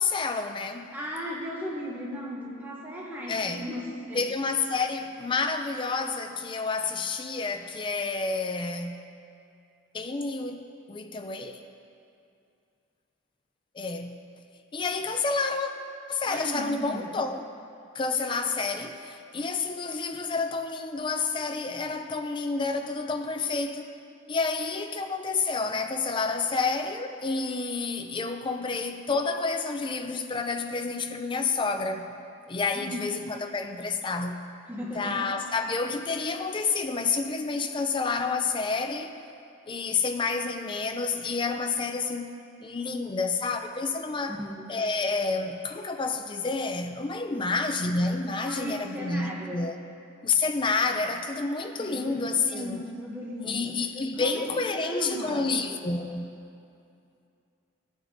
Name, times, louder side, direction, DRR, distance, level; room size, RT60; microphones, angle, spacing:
voice 1, 0.0-0.9 3.3-3.7 4.1-9.1 9.9-11.6 13.7-14.2 14.7-15.7 16.1-17.4 17.9-23.9 24.3-32.1 32.5-34.4 34.9-39.1 39.7-44.4 44.7-49.8 50.2-52.8 53.4-56.3, left 4 dB, 25° left, 0.4 m, -29 dB
voice 2, 0.9-4.3 16.3-17.1 32.7-33.1 34.7-35.4 44.3-44.7 47.3-47.5 48.4-49.7 51.8-53.8 54.2-55.6, equal, 10° right, 0.8 m, -36 dB
15.0 x 6.0 x 2.7 m
head